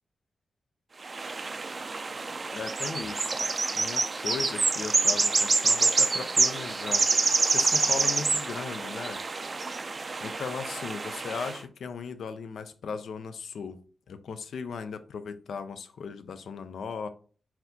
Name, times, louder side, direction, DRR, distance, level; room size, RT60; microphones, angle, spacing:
sound 1, 1.0-11.6, right 3 dB, 40° right, 0.3 m, -27 dB
voice 1, 2.5-3.4 3.7-7.1 7.5-9.2 10.2-13.8 14.1-17.1, left 5 dB, 80° left, 0.4 m, -37 dB
4.0 x 2.8 x 2.7 m
wide cardioid pair, 100°, 0 cm